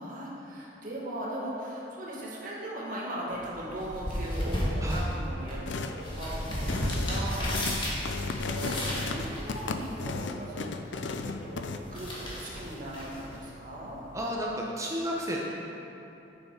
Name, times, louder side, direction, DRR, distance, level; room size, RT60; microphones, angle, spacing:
voice 1, 0.0-8.0 8.4-14.0, right 1 dB, 45° right, -5 dB, 1.9 m, -39 dB
sound 1, 3.3-14.3, equal, 25° left, 1.8 m, -35 dB
sound 2, 5.7-6.0 6.5-11.8, left 3 dB, 75° left, 0.5 m, -35 dB
voice 2, 14.1-15.5, equal, 15° right, -3 dB, 0.9 m, -32 dB
9.5 x 7.2 x 4.7 m, 2.9 s
head